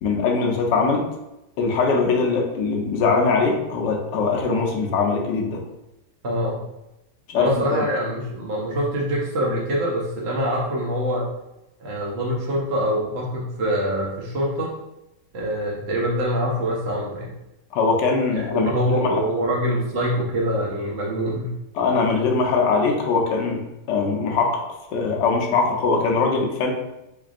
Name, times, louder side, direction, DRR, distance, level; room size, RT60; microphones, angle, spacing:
voice 1, 0.0-1.1 1.6-5.6 7.3-7.8 17.7-19.2 21.7-24.6 24.9-26.7, left 4 dB, 85° left, 1 dB, 1.3 m, -22 dB
voice 2, 6.2-6.6 7.4-11.2 11.8-14.7 15.3-17.3 18.3-21.5, equal, 55° right, -4 dB, 0.7 m, -24 dB
3.6 x 3.3 x 2.4 m, 0.91 s
omnidirectional pair, 1.8 m